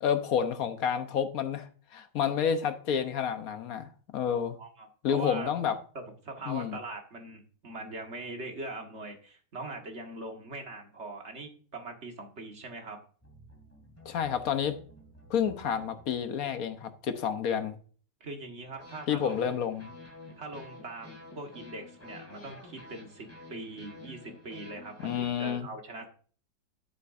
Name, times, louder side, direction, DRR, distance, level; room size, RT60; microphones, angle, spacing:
voice 1, 0.0-4.6 5.0-5.8 6.5-6.8 14.0-14.8 15.3-17.8 19.1-19.9 25.0-25.7, left 8 dB, 60° left, 1.3 m, -30 dB
voice 2, 4.3-5.5 6.2-13.0 18.2-19.4 20.4-26.1, right 2 dB, 40° right, 1.9 m, -42 dB
sound 1, 13.2-17.1 18.8-25.3, left 2 dB, 10° left, 2.9 m, -50 dB
9.8 x 8.4 x 2.6 m
omnidirectional pair, 1.8 m